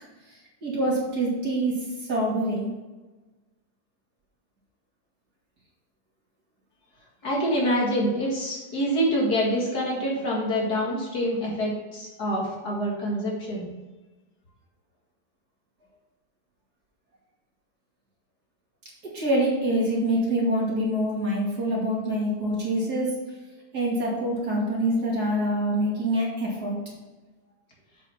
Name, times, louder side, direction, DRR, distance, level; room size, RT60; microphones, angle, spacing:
voice 1, 0.3-2.7 19.1-23.2 23.7-26.8, right 1 dB, 60° right, -4 dB, 2.9 m, -25 dB
voice 2, 7.2-13.7, equal, 60° left, -3 dB, 2.5 m, -26 dB
7.4 x 5.4 x 5.8 m, 1.2 s
omnidirectional pair, 1.9 m